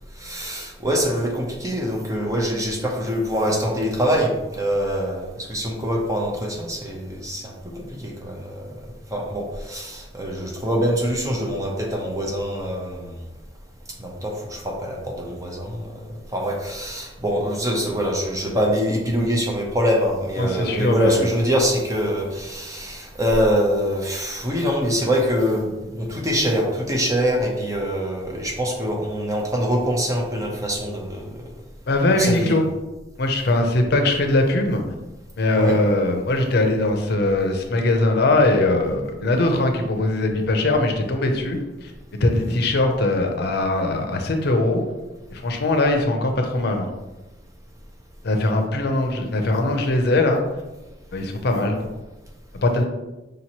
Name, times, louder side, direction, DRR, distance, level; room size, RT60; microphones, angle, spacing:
voice 1, 0.2-8.7 9.1-13.3 14.0-15.9 16.3-31.4 32.1-32.6 35.5-35.8 42.3-42.6, equal, 20° right, 0 dB, 0.7 m, -24 dB
voice 2, 20.4-21.3 31.9-32.6 33.2-34.8 35.4-41.9 42.2-44.8 45.3-46.9 48.2-50.4 51.1-51.9 52.5-52.8, left 2 dB, 60° left, 4 dB, 0.6 m, -21 dB
5.0 x 2.9 x 2.9 m, 1.1 s
head